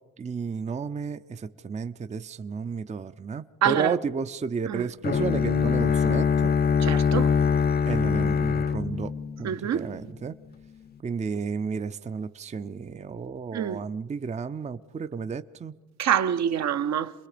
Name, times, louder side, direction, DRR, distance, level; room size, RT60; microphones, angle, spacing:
voice 1, 0.2-6.6 7.9-10.4 11.0-15.7, right 5 dB, 25° right, 0.5 m, -32 dB
voice 2, 3.6-3.9 4.7-4.9 6.8-7.3 9.4-9.9 13.5-13.8 16.0-17.1, right 9 dB, 60° right, 0.8 m, -26 dB
Bowed string instrument, 5.0-10.0, left 6 dB, 30° left, 0.7 m, -23 dB
27.5 x 21.0 x 5.1 m
cardioid pair, 90°, 30 cm